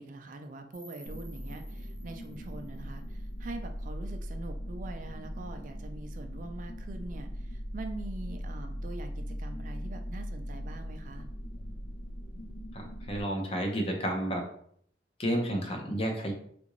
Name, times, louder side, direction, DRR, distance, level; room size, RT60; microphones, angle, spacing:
voice 1, 0.0-11.3, right 2 dB, 45° right, 6 dB, 0.3 m, -43 dB
sound 1, 0.7-3.7, right 1 dB, 5° right, 0.9 m, -57 dB
sound 2, 1.1-13.2, equal, 85° left, 0.6 m, -39 dB
voice 2, 12.7-14.5 15.2-16.3, equal, 35° left, 2 dB, 0.6 m, -31 dB
3.6 x 2.5 x 3.0 m, 0.64 s
head